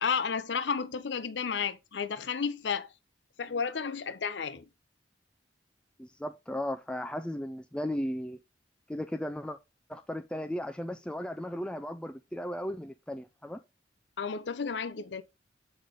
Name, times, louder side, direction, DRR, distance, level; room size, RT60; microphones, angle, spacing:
voice 1, 0.0-2.9 3.4-4.6 14.2-15.2, left 6 dB, 70° left, 0.6 m, -32 dB
voice 2, 6.0-8.4 8.9-9.6 9.9-13.6, left 1 dB, 5° left, 0.3 m, -36 dB
7.9 x 5.0 x 3.9 m
head